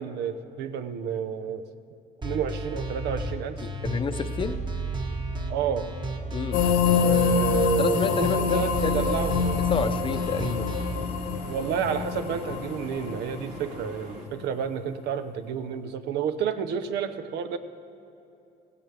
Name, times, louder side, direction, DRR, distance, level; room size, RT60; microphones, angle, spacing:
voice 1, 0.0-1.7 2.2-3.6 5.5-5.9 6.8-9.6 11.5-17.6, right 7 dB, 75° right, 10 dB, 0.8 m, -30 dB
sound 1, 2.2-10.9, right 2 dB, 25° right, 1.3 m, -32 dB
voice 2, 3.6-4.6 6.3-6.6 7.8-9.1 9.7-10.8, left 5 dB, 30° left, 10 dB, 0.7 m, -29 dB
sound 2, 6.5-14.3, left 6 dB, 70° left, 0.8 m, -26 dB
sound 3, 8.5-14.3, right 2 dB, 55° right, 2.3 m, -43 dB
17.5 x 16.5 x 3.4 m, 2.8 s
cardioid pair, 110°, 17 cm